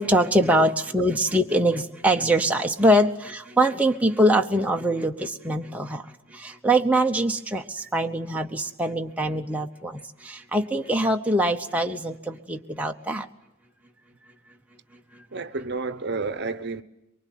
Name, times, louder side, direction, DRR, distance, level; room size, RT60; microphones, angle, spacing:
voice 1, 0.0-3.1 3.4-6.0 6.3-13.3 15.1-15.3, right 1 dB, 5° right, 0.9 m, -23 dB
voice 2, 15.3-16.8, right 3 dB, 50° right, 1.0 m, -30 dB
24.0 x 24.0 x 9.4 m
head